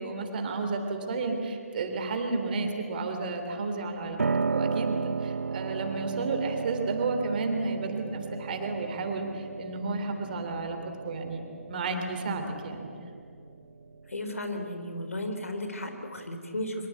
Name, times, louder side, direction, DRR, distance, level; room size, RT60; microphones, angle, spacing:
voice 1, 0.0-10.8 11.0-11.4 11.7-12.9, right 3 dB, 40° right, 5 dB, 3.4 m, -32 dB
Piano, 4.2-14.1, right 5 dB, 70° right, 0.6 m, -34 dB
voice 2, 14.1-16.9, left 1 dB, 70° left, 6 dB, 3.8 m, -34 dB
24.0 x 23.0 x 8.4 m, 2.6 s
figure-of-eight pair, 140°, 8 cm